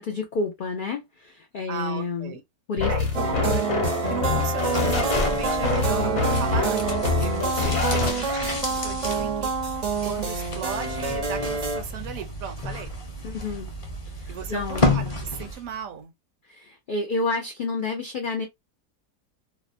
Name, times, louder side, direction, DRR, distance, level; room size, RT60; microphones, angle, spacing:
voice 1, 0.0-2.3 2.7-3.3 13.2-13.7 14.0-14.9 16.4-18.5, left 3 dB, 90° left, 0.4 m, -30 dB
voice 2, 1.7-2.4 2.9-3.6 4.1-9.5 10.0-12.9 14.3-16.1, right 7 dB, 75° right, 1.0 m, -36 dB
sound 1, 2.8-8.4, left 4 dB, 55° left, 1.0 m, -26 dB
sound 2, 3.1-11.8, right 4 dB, 50° right, 0.5 m, -27 dB
sound 3, 4.5-15.7 16.0-16.1, left 1 dB, 30° left, 0.6 m, -31 dB
2.8 x 2.1 x 2.4 m
omnidirectional pair, 1.5 m